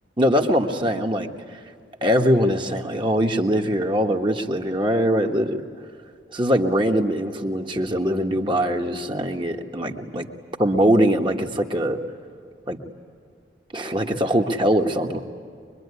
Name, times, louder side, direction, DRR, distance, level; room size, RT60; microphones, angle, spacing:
voice 1, 0.2-1.3 2.0-5.6 6.3-10.3 10.6-12.0 12.7-12.8 13.7-15.2, equal, 25° right, 2 dB, 1.5 m, -22 dB
24.5 x 23.0 x 9.8 m, 2.3 s
head